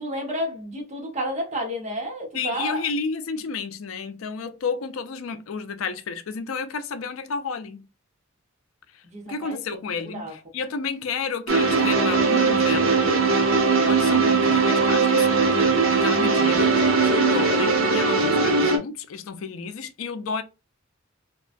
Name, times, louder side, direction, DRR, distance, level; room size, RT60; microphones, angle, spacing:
voice 1, 0.0-2.9 9.0-9.6 10.1-10.3, equal, 35° right, 1.0 m, -30 dB
voice 2, 2.3-7.9 9.3-13.1 13.9-16.8 17.0-20.4, left 5 dB, 80° left, 0.4 m, -31 dB
sound 1, 11.5-18.8, right 4 dB, 90° right, 0.8 m, -20 dB
2.9 x 2.3 x 2.5 m
head